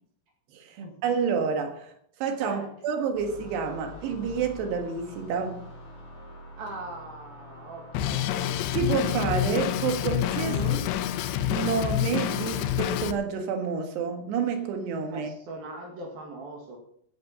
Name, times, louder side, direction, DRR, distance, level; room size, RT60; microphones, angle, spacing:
voice 1, 0.5-1.9 2.2-5.6 8.7-10.6 11.5-15.3, right 6 dB, 90° right, 3.6 m, -29 dB
sound 1, 3.1-8.8, left 2 dB, 45° left, 4.4 m, -46 dB
voice 2, 6.6-8.2 10.4-10.8 15.1-16.8, right 3 dB, 65° right, 3.8 m, -39 dB
Drum kit, 7.9-13.1, left 11 dB, 90° left, 3.0 m, -27 dB
15.5 x 9.5 x 5.5 m
omnidirectional pair, 4.7 m